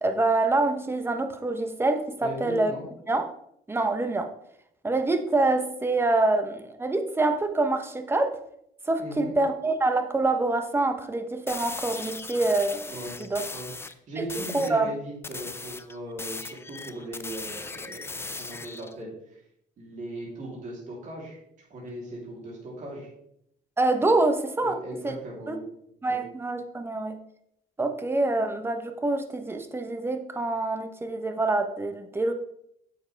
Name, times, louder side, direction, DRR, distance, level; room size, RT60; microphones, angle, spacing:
voice 1, 0.0-2.7 3.1-3.2 3.7-4.3 4.8-8.4 8.9-13.4 14.5-14.9 23.8-24.8 25.0-25.1 25.5-25.6 26.0-27.2 27.8-32.3, right 2 dB, 15° right, 7 dB, 1.0 m, -26 dB
voice 2, 2.2-2.9 9.0-9.4 12.9-13.2 13.5-19.4 19.8-21.4 21.7-23.1 24.6-25.6 26.1-26.2, right 1 dB, 50° right, -4 dB, 3.5 m, -38 dB
sound 1, 11.5-13.9 14.3-14.8 15.2-18.9, left 3 dB, 15° left, 0.6 m, -38 dB
9.1 x 7.6 x 3.5 m, 0.75 s
cardioid pair, 110°, 17 cm